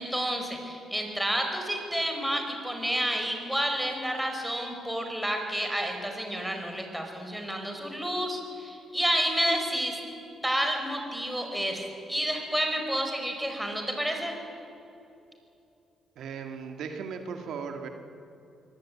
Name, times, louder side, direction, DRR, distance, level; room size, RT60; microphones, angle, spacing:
voice 1, 0.0-10.0 10.4-14.3, equal, 5° right, 3 dB, 5.2 m, -30 dB
voice 2, 16.2-17.9, right 6 dB, 75° right, 4 dB, 2.0 m, -37 dB
24.5 x 18.5 x 8.7 m, 2.8 s
cardioid pair, 90°, 0 cm